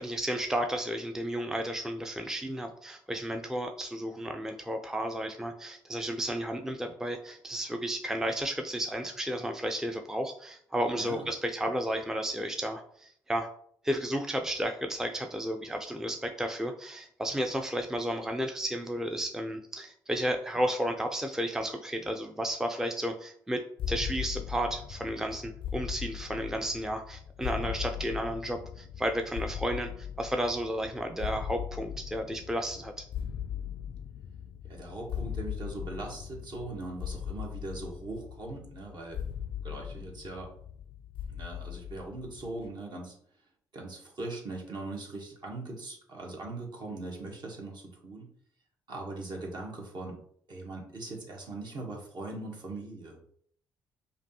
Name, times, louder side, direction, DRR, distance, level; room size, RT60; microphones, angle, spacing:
voice 1, 0.0-13.5 13.8-33.1, equal, 5° right, 5 dB, 0.5 m, -33 dB
voice 2, 11.0-11.3 34.7-39.2 39.6-40.5 41.3-43.1 43.7-48.3 48.9-50.2 50.5-53.2, right 2 dB, 50° right, -1 dB, 1.5 m, -40 dB
sound 1, 23.8-42.7, left 9 dB, 60° left, 0.4 m, -39 dB
5.0 x 2.8 x 2.9 m, 0.63 s
hypercardioid pair, 50°, 10 cm